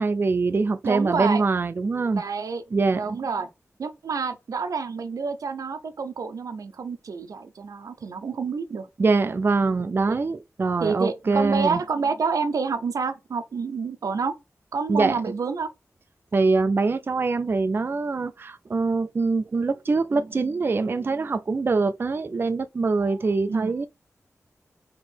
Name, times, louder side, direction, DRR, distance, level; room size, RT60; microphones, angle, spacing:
voice 1, 0.0-2.2 2.7-3.2 9.0-11.8 14.9-15.2 16.3-23.9, right 3 dB, 40° right, 0.3 m, -23 dB
voice 2, 0.8-1.4 2.1-2.6 3.0-3.5 3.8-8.9 10.1-10.2 10.8-14.4 14.7-15.7 23.5-23.7, right 5 dB, 90° right, 0.5 m, -28 dB
3.6 x 2.9 x 4.3 m
wide cardioid pair, 90°, 6 cm